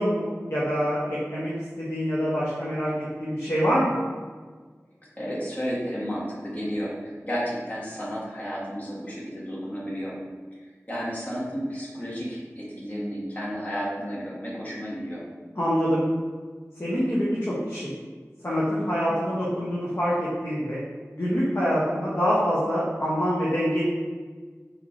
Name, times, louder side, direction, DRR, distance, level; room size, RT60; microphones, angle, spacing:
voice 1, 0.0-1.5 1.8-3.9 15.6-16.0 16.8-17.9 18.4-20.8 21.2-23.8, equal, 45° left, -8 dB, 0.8 m, -25 dB
voice 2, 5.2-10.1 10.9-15.2, equal, 30° left, -7 dB, 1.3 m, -32 dB
4.4 x 3.0 x 2.6 m, 1.5 s
wide cardioid pair, 45°, 6 cm